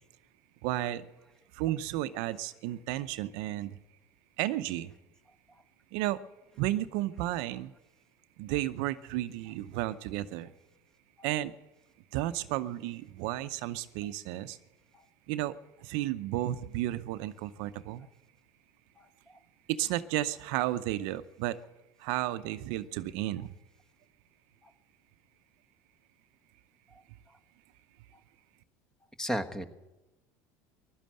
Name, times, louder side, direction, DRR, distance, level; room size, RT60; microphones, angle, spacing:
voice 1, 0.6-1.1 1.5-3.8 4.4-4.9 5.9-6.2 6.6-7.7 8.4-10.5 11.2-11.5 12.1-14.6 15.3-18.1 19.7-21.6 22.0-23.5, right 15 dB, 70° right, 12 dB, 0.7 m, -33 dB
voice 2, 29.2-29.6, equal, 5° left, 9 dB, 1.3 m, -35 dB
15.5 x 12.0 x 7.7 m, 0.99 s
supercardioid pair, 105°, 8 cm